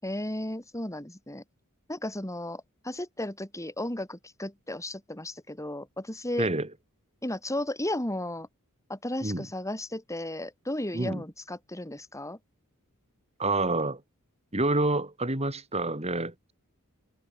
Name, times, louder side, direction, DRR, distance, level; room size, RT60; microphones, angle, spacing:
voice 1, 0.0-1.4 1.9-6.5 7.2-8.5 8.9-12.4, left 1 dB, 15° left, 7.1 m, -34 dB
voice 2, 6.4-6.7 9.2-9.5 10.9-11.2 13.4-14.0 14.5-16.5, right 2 dB, 30° right, 5.5 m, -28 dB
head